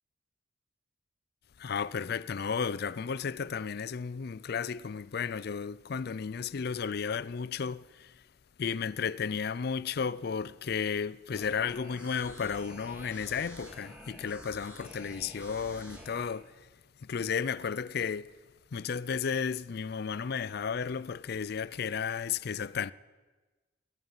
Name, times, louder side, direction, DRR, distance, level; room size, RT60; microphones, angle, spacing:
voice 1, 1.6-8.1 8.6-16.5 17.0-18.3 18.7-22.9, left 6 dB, 55° left, 0.4 m, -33 dB
sound 1, 11.3-16.3, equal, 5° right, 2.5 m, -49 dB
17.0 x 9.3 x 9.0 m
head